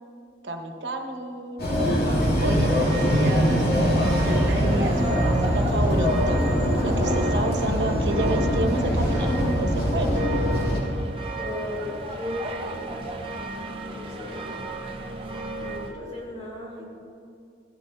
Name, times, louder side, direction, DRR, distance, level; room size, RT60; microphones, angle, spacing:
voice 1, 0.4-1.7 2.4-3.8 4.3-6.4 6.8-10.3, right 1 dB, 80° right, 4 dB, 1.1 m, -30 dB
sound 1, 1.6-10.8, equal, 60° left, 2.8 m, -23 dB
voice 2, 2.1-2.6 11.4-13.0 13.9-14.7 15.6-16.8, left 2 dB, 35° left, -5 dB, 3.2 m, -37 dB
sound 2, 2.6-15.9, right 1 dB, 30° right, 0.8 m, -33 dB
15.5 x 12.5 x 2.7 m, 2.6 s
head